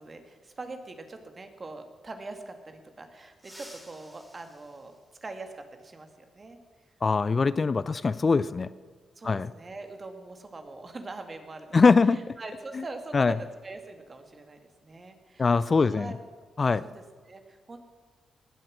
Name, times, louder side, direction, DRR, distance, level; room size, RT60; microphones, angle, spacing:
voice 1, 0.0-6.6 7.3-7.5 9.2-11.8 12.1-15.5 15.8-16.2 16.8-17.8, right 3 dB, 40° right, 6 dB, 2.1 m, -43 dB
sound 1, 3.3-5.8 7.4-7.5 8.7-8.8 10.5-10.6 11.0-11.2 11.7-13.8 14.1-14.4 14.8-15.2, equal, 5° right, 3.6 m, -54 dB
voice 2, 7.0-8.7 9.2-9.5 11.7-12.3 12.8-12.9 13.1-13.3 15.4-16.1 16.6-16.8, left 4 dB, 45° left, 17 dB, 0.4 m, -22 dB
19.5 x 7.8 x 6.3 m, 1.5 s
supercardioid pair, 45°, 0 cm